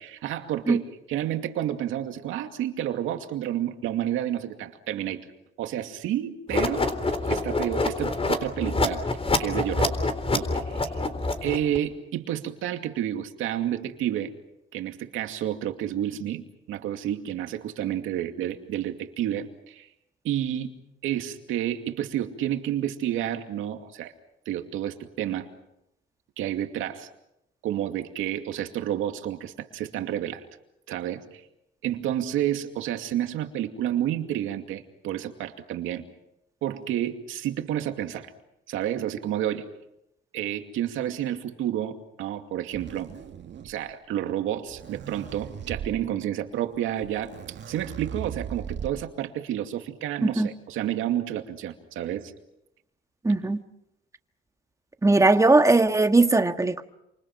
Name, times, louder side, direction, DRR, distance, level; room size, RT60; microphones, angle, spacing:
voice 1, 0.0-5.3 5.6-6.9 7.2-9.0 9.4-10.0 10.3-11.0 11.4-14.3 14.7-16.4 16.7-19.9 20.2-20.7 21.0-24.1 24.5-25.5 26.4-27.1 27.6-30.4 30.9-31.2 31.8-36.1 36.6-38.3 38.7-39.7 40.3-43.1 43.6-47.3 47.7-52.3, right 11 dB, 90° right, 2.5 m, -30 dB
sound 1, 6.5-11.8, left 3 dB, 30° left, 3.9 m, -26 dB
sound 2, 42.7-43.9 44.6-45.9 46.8-46.9 47.0-49.1, right 8 dB, 65° right, 2.3 m, -38 dB
voice 2, 53.2-53.6 55.0-56.8, right 2 dB, 15° right, 1.8 m, -19 dB
28.5 x 26.5 x 6.0 m
cardioid pair, 90°, 20 cm